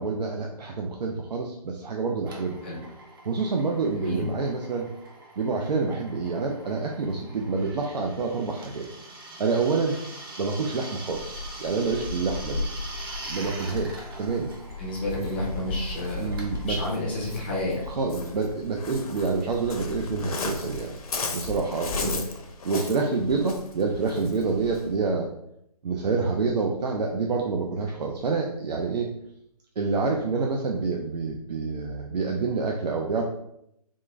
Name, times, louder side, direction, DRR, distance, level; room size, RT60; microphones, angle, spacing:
voice 1, 0.0-2.6 3.3-4.9 5.4-8.9 9.4-10.0 10.4-12.7 13.3-14.5 16.2-16.8 17.9-20.9 21.3-22.2 22.6-25.3 25.8-29.1 29.8-33.2, right 4 dB, 80° right, 1 dB, 0.6 m, -27 dB
Drill, 2.3-18.6, right 2 dB, 35° right, 0.6 m, -44 dB
Waves surf, 11.1-25.0, left 3 dB, 60° left, 0.6 m, -36 dB
voice 2, 14.8-16.3 16.7-17.8 21.9-22.2, left 1 dB, 15° left, -4 dB, 0.5 m, -30 dB
3.6 x 2.5 x 3.2 m, 0.76 s
hypercardioid pair, 165°, 21 cm